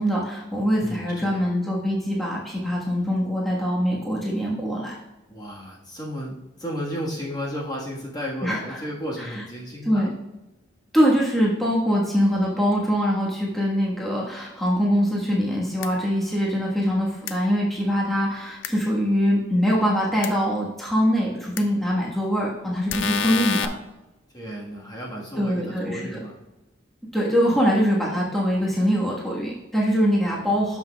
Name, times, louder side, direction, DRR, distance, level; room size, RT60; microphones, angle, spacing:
voice 1, 0.0-4.9 8.4-8.6 9.9-10.1 10.9-23.7 25.4-26.0 27.1-30.8, equal, ahead, -5 dB, 1.3 m, -23 dB
voice 2, 0.8-1.5 5.3-10.1 24.3-26.4, equal, 20° left, -3 dB, 1.4 m, -33 dB
sound 1, 15.8-15.9 17.3-17.4 18.6-18.7 20.2-20.3 21.6-21.7 22.9-23.7, left 7 dB, 80° left, 0.5 m, -26 dB
12.0 x 5.8 x 2.3 m, 0.99 s
head